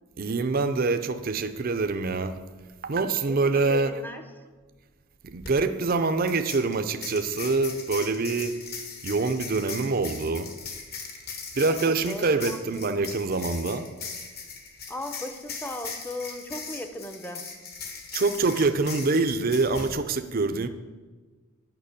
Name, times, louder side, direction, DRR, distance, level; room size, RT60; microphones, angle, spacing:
voice 1, 0.2-2.4 2.8-4.0 5.2-8.6 9.0-10.5 11.6-13.9 18.1-20.7, right 3 dB, 45° right, 9 dB, 0.6 m, -25 dB
voice 2, 3.3-4.2 11.7-12.6 14.9-17.4, left 1 dB, 10° left, 7 dB, 0.7 m, -37 dB
sound 1, 5.3-5.5 6.3-19.9, left 5 dB, 50° left, 1.6 m, -39 dB
9.0 x 6.0 x 8.2 m, 1.4 s
head